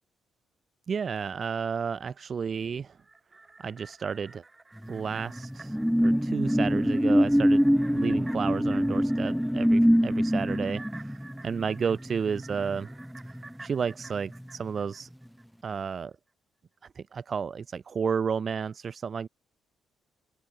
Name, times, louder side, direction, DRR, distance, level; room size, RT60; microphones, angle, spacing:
voice 1, 0.9-3.0 3.6-4.4 4.9-12.9 13.3-15.1 15.6-16.1 17.0-19.3, right 6 dB, 45° right, 0.7 m, -32 dB
sound 1, 2.9-15.4 15.8-15.9, right 3 dB, 20° right, 4.5 m, -51 dB
sound 2, 4.8-13.8 14.2-14.4, equal, ahead, 0.6 m, -25 dB
open air
cardioid pair, 90°, 0 cm